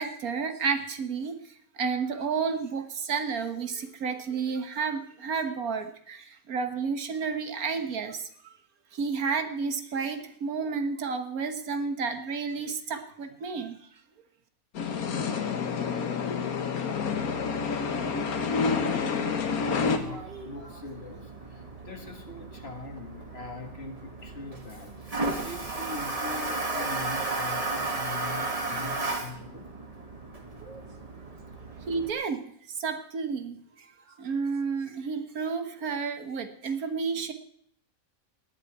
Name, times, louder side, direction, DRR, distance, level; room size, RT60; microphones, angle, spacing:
voice 1, 0.0-1.4 1.8-8.3 8.9-13.8 31.8-32.4 32.8-33.9 34.2-37.3, right 5 dB, 85° right, 8 dB, 1.7 m, -31 dB
sound 1, 14.7-20.0, left 5 dB, 90° left, 1.7 m, -28 dB
voice 2, 18.8-21.6 21.9-29.7, left 3 dB, 45° left, 5 dB, 1.9 m, -41 dB
Toilet flush, 19.9-32.1, right 2 dB, 25° right, 1.9 m, -34 dB
18.0 x 11.0 x 4.7 m, 0.65 s
omnidirectional pair, 1.5 m